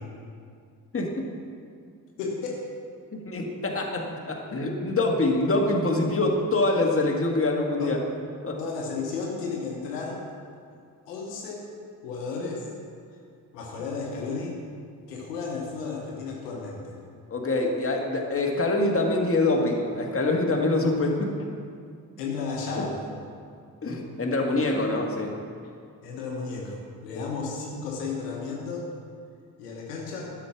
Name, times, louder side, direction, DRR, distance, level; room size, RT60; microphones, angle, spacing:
voice 1, 0.9-1.3 3.1-8.0 8.4-8.6 17.3-21.4 22.7-22.9 23.8-25.4 27.2-27.3, left 2 dB, 30° left, 1 dB, 1.8 m, -25 dB
voice 2, 2.2-2.7 7.8-7.9 8.6-10.2 11.1-11.7 12.0-12.7 13.5-14.6 15.1-17.0 22.2-23.0 26.0-28.9 29.6-30.3, left 4 dB, 80° left, -1 dB, 1.2 m, -33 dB
11.5 x 6.4 x 5.9 m, 2.2 s
figure-of-eight pair, 40°, 47 cm